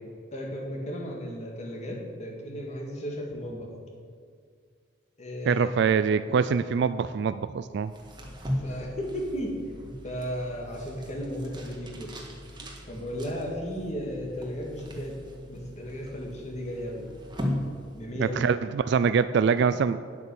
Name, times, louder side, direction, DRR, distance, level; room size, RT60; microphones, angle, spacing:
voice 1, 0.3-3.7 5.2-5.8 8.6-9.5 10.0-12.1 12.9-15.1 15.5-17.1 18.0-18.5, equal, 40° left, -1 dB, 1.9 m, -35 dB
voice 2, 5.5-7.9 18.2-20.0, right 6 dB, 60° right, 13 dB, 0.3 m, -24 dB
sound 1, 7.9-18.4, equal, 25° right, 1.5 m, -38 dB
9.3 x 8.2 x 7.1 m, 2.1 s
head